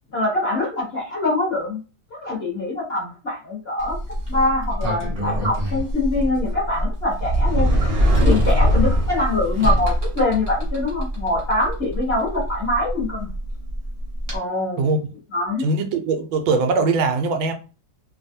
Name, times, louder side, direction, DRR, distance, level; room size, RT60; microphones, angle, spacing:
voice 1, 0.1-1.8 2.2-4.0 4.3-7.7 8.2-13.3 14.3-15.0 15.3-15.7, left 2 dB, 40° left, 1.2 m, -24 dB
Sliding door, 3.8-14.4, equal, 40° right, 0.8 m, -23 dB
voice 2, 14.8-15.1 15.6-17.5, right 3 dB, 85° right, 1.4 m, -21 dB
3.4 x 2.3 x 2.6 m
omnidirectional pair, 2.1 m